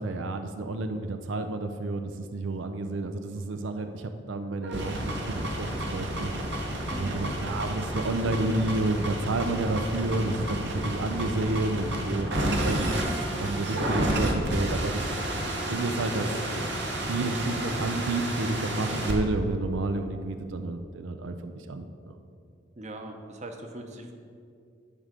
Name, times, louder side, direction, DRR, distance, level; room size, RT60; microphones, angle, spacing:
voice 1, 0.0-6.6 7.0-13.0 13.4-15.1 15.7-16.3 17.1-22.2, right 2 dB, 90° right, 7 dB, 0.5 m, -30 dB
sound 1, 4.6-19.1, right 1 dB, 65° right, 1.3 m, -31 dB
voice 2, 6.9-7.2 22.8-24.1, right 1 dB, 40° right, 5 dB, 0.8 m, -40 dB
11.0 x 3.7 x 6.6 m, 2.3 s
head